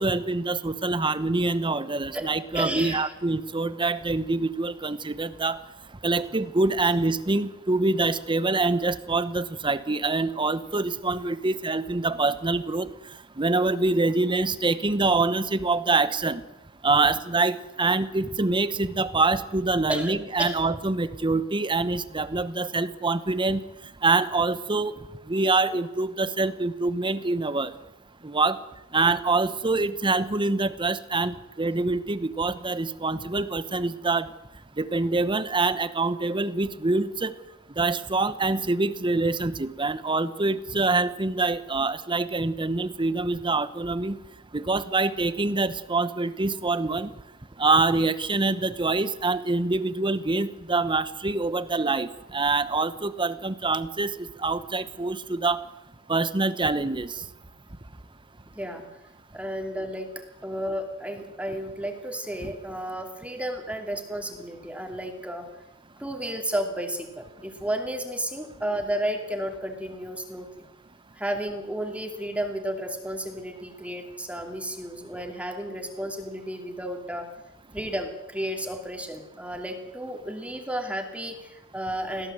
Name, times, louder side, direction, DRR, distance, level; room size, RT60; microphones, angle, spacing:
voice 1, 0.0-5.6 6.0-12.9 13.4-16.4 16.8-23.6 24.0-24.9 25.3-27.7 28.2-28.6 28.9-34.3 34.8-37.3 37.8-44.2 44.5-47.1 47.6-54.1 54.4-55.6 56.1-57.1 62.4-62.5, right 3 dB, 25° right, 14 dB, 1.0 m, -25 dB
voice 2, 2.5-3.1 19.9-20.6 58.5-58.8 59.3-60.1 60.4-65.5 66.0-70.6 71.2-77.3 77.7-82.3, right 1 dB, 5° right, 3 dB, 2.7 m, -32 dB
22.0 x 16.0 x 7.8 m, 0.98 s
head